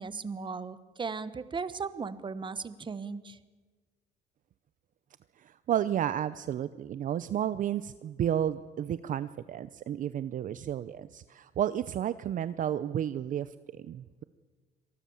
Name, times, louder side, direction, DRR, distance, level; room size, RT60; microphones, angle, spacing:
voice 1, 0.0-3.4, right 5 dB, 30° right, 14 dB, 1.2 m, -37 dB
voice 2, 5.4-14.2, right 10 dB, 50° right, 14 dB, 0.7 m, -32 dB
26.0 x 19.5 x 7.1 m, 1.4 s
cardioid pair, 110°, 17 cm